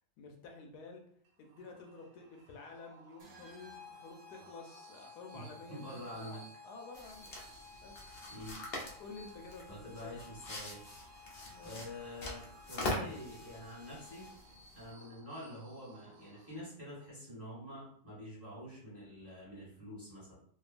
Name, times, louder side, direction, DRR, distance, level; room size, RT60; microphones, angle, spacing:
voice 1, 0.2-1.0 1.4-7.4 7.8-8.1 9.0-10.4 11.5-11.8, left 4 dB, 85° left, 2 dB, 1.2 m, -51 dB
sound 1, 1.2-17.0, right 3 dB, 80° right, 1.2 m, -61 dB
sound 2, 3.2-14.6, left 4 dB, 50° right, 1.0 m, -56 dB
voice 2, 5.7-6.4 8.3-8.6 9.7-10.8 11.6-14.3 14.7-20.3, equal, 10° right, -8 dB, 1.1 m, -47 dB
sound 3, 6.9-14.9, left 1 dB, 65° left, 0.6 m, -44 dB
2.9 x 2.3 x 2.4 m, 0.63 s
omnidirectional pair, 1.7 m